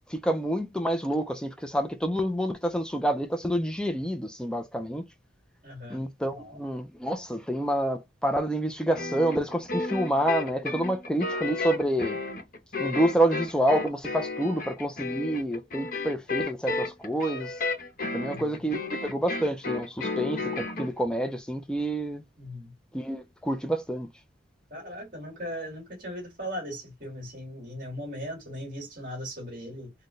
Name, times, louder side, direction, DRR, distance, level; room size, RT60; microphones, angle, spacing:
voice 1, 0.1-5.1 5.9-12.2 12.8-17.6 18.1-22.2 22.9-24.1, right 1 dB, 5° left, 0.3 m, -28 dB
voice 2, 5.6-6.0 6.3-6.6 18.2-18.5 22.4-22.7 24.7-29.9, equal, 45° right, 2.1 m, -38 dB
sound 1, 8.9-20.9, left 3 dB, 45° left, 0.9 m, -33 dB
4.2 x 2.1 x 3.1 m
head